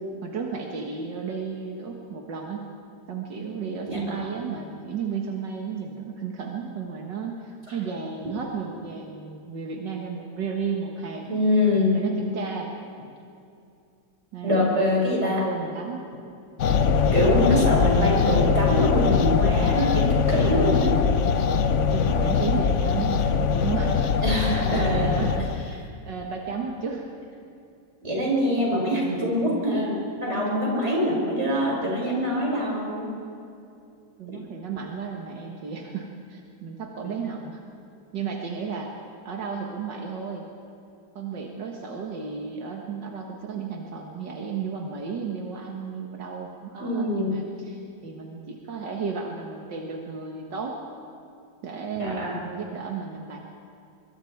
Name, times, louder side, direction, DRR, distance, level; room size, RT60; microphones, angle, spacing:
voice 1, 0.2-2.7 3.1-11.3 11.9-12.7 14.3-16.0 20.4-20.8 21.7-24.2 24.6-25.5 26.1-27.1 34.2-37.6 38.1-38.9 39.3-40.4 41.2-50.8 51.6-53.4, right 5 dB, 85° right, 1 dB, 2.2 m, -33 dB
voice 2, 3.9-4.2 7.7-7.8 11.3-12.0 14.4-15.5 17.1-20.9 22.1-22.2 24.2-25.0 28.0-33.1 34.3-34.4 46.8-47.4 51.9-52.4, left 1 dB, 40° right, -3 dB, 6.1 m, -24 dB
sound 1, 16.6-25.8, left 6 dB, 55° left, 0.9 m, -22 dB
24.5 x 23.0 x 4.7 m, 2.5 s
omnidirectional pair, 1.9 m